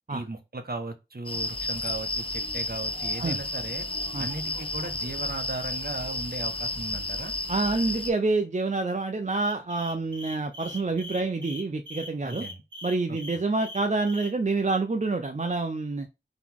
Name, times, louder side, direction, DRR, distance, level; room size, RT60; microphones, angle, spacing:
voice 1, 0.1-3.8 4.2-7.3 12.2-12.6 13.1-13.2, right 2 dB, 55° right, 1.0 m, -37 dB
sound 1, 1.3-8.1, left 2 dB, 30° left, 0.7 m, -32 dB
voice 2, 7.5-12.5 12.8-16.1, right 3 dB, 40° right, 0.5 m, -27 dB
sound 2, 9.3-14.3, left 1 dB, 90° right, 1.2 m, -41 dB
4.0 x 3.0 x 3.5 m
wide cardioid pair, 45°, 19 cm